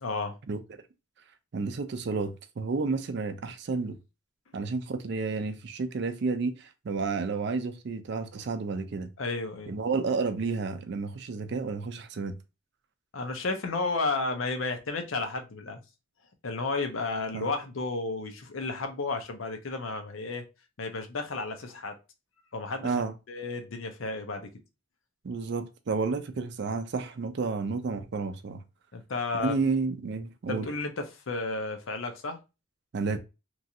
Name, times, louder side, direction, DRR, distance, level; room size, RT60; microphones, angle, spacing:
voice 1, 0.0-0.4 9.2-9.8 13.1-15.8 16.4-20.5 20.8-21.9 22.5-22.9 23.3-24.5 28.9-29.6 30.5-32.4, left 3 dB, 80° left, 0.7 m, -32 dB
voice 2, 1.5-4.0 4.5-9.1 9.7-12.4 17.3-17.5 22.8-23.1 25.2-28.6 29.3-30.7 32.9-33.2, right 4 dB, 55° right, 0.4 m, -31 dB
3.0 x 2.5 x 2.7 m
head